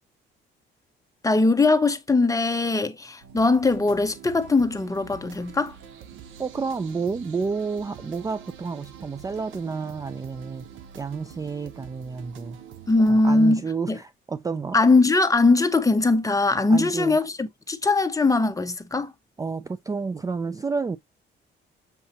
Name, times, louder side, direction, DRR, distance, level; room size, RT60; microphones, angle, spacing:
voice 1, 1.2-5.7 12.9-13.6 13.9-14.0 14.7-19.1, left 3 dB, 15° left, 0.8 m, -21 dB
sound 1, 3.2-13.2, right 8 dB, 85° right, 0.9 m, -45 dB
voice 2, 6.4-10.7 10.9-12.6 13.1-14.8 16.7-17.2 19.4-21.0, right 4 dB, 15° right, 0.3 m, -30 dB
6.9 x 2.8 x 2.8 m
cardioid pair, 90°, 20 cm